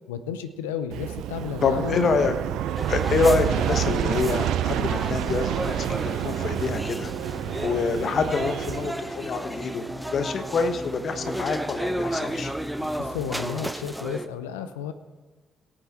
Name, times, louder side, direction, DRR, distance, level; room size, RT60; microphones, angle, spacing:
voice 1, 0.1-2.1 13.0-14.9, left 8 dB, 80° left, 11 dB, 0.5 m, -32 dB
Aircraft, 0.9-8.9, right 11 dB, 70° right, 0.5 m, -28 dB
voice 2, 1.6-2.3 2.9-7.1 7.6-12.5, left 4 dB, 55° left, 9 dB, 1.1 m, -26 dB
sound 1, 2.7-14.3, right 1 dB, 5° right, 0.8 m, -34 dB
sound 2, 3.2-13.4, right 1 dB, 45° right, 2.5 m, -41 dB
18.0 x 8.8 x 4.3 m, 1.3 s
figure-of-eight pair, 40°, 0 cm